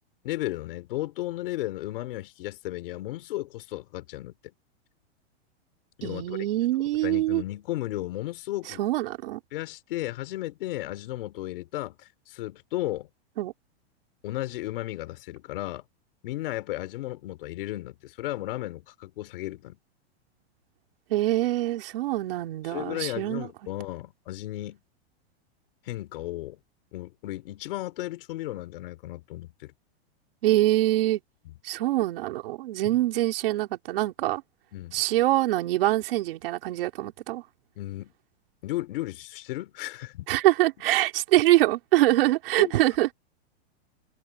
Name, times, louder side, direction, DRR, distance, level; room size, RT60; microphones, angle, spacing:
voice 1, 0.2-4.4 6.0-6.4 7.0-8.8 9.5-13.1 14.2-15.8 16.2-19.8 22.6-24.8 25.8-26.6 26.9-29.7 34.7-35.0 37.8-38.1 38.6-40.3 42.6-42.7, left 16 dB, 55° left, 4.1 m, -34 dB
voice 2, 6.0-7.4 8.7-9.4 13.4-13.5 21.1-23.5 30.4-31.2 31.6-34.4 34.9-37.4 40.3-43.1, right 16 dB, 55° right, 3.8 m, -24 dB
supercardioid pair, 165°, 33 cm